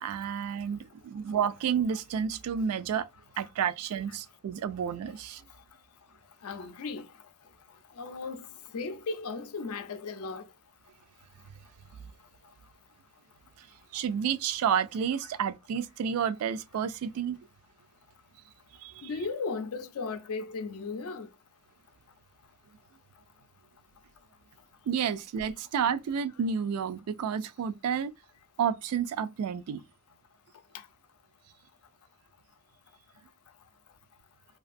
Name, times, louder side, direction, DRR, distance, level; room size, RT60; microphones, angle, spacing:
voice 1, 0.0-3.1 3.4-5.4 13.9-17.4 18.8-19.1 24.9-28.1 28.6-29.8, right 7 dB, 75° right, 0.3 m, -30 dB
voice 2, 6.4-7.1 7.9-10.4 19.0-21.3 30.7-30.9, left 4 dB, 70° left, 0.4 m, -36 dB
2.5 x 2.3 x 2.4 m
head